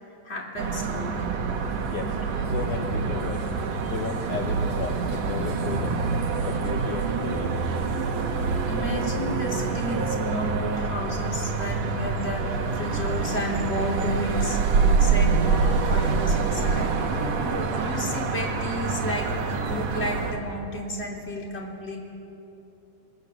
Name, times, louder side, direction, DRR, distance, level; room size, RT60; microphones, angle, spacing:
voice 1, 0.2-1.3 8.7-19.4 19.7-22.0, equal, 15° left, -1 dB, 3.0 m, -32 dB
sound 1, 0.6-20.3, right 4 dB, 55° right, 2.0 m, -26 dB
sound 2, 1.2-14.7, right 5 dB, 80° right, 2.0 m, -36 dB
voice 2, 2.5-3.5 3.9-6.0 6.4-7.7, left 6 dB, 70° left, 3 dB, 1.9 m, -34 dB
28.5 x 20.0 x 7.1 m, 3.0 s
omnidirectional pair, 5.0 m